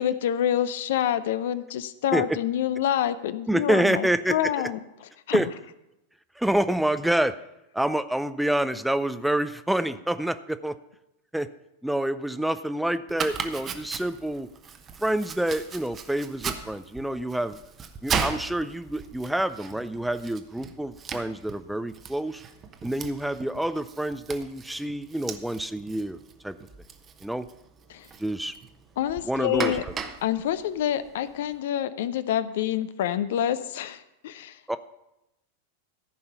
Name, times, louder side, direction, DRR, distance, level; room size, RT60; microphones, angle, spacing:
voice 1, 0.0-4.8 5.3-5.4 27.9-28.1 29.0-29.8 30.2-34.8, left 11 dB, 55° left, 14 dB, 0.6 m, -27 dB
voice 2, 3.5-4.5 5.3-5.5 6.4-7.4 7.7-10.8 11.3-11.5 11.8-14.5 15.0-17.6 18.0-22.4 22.8-26.6 27.2-27.5 28.2-28.5 29.3-29.8 34.7-34.8, right 1 dB, 5° right, 12 dB, 0.4 m, -27 dB
Domestic sounds home sounds, 13.1-31.5, right 6 dB, 25° right, 0.9 m, -37 dB
14.0 x 5.5 x 6.7 m, 0.89 s
figure-of-eight pair, 90°, 0 cm